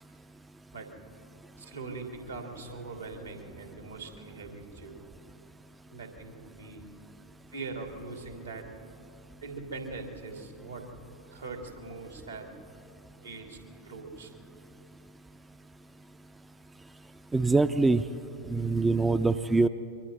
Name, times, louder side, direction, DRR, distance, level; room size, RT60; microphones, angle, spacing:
voice 1, 1.6-5.1 5.9-6.8 7.5-8.7 9.4-10.9 11.3-12.5 13.2-13.6 13.8-14.3, right 3 dB, 80° right, 3 dB, 2.9 m, -41 dB
voice 2, 17.3-18.0 18.5-19.7, right 3 dB, 10° right, 11 dB, 0.5 m, -24 dB
27.5 x 23.5 x 4.1 m, 2.6 s
figure-of-eight pair, 90°, 0 cm